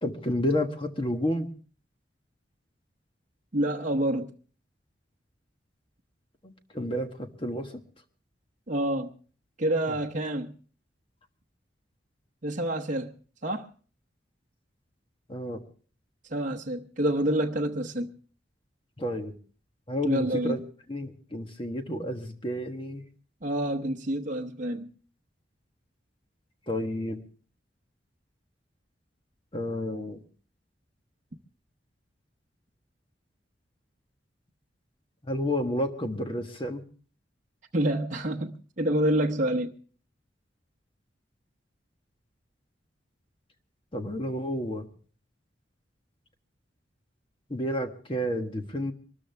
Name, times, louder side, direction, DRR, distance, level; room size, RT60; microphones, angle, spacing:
voice 1, 0.0-1.5 6.4-7.7 15.3-15.6 19.0-19.3 19.9-20.6 20.9-23.0 26.7-27.2 29.5-30.2 35.2-36.8 43.9-44.9 47.5-48.9, left 1 dB, 30° left, 1.4 m, -30 dB
voice 2, 3.5-4.3 8.7-9.1 9.6-10.5 12.4-13.1 13.4-13.7 16.3-18.1 20.0-20.6 23.4-24.9 37.7-39.8, right 1 dB, 45° right, 0.9 m, -27 dB
24.0 x 13.5 x 3.4 m
head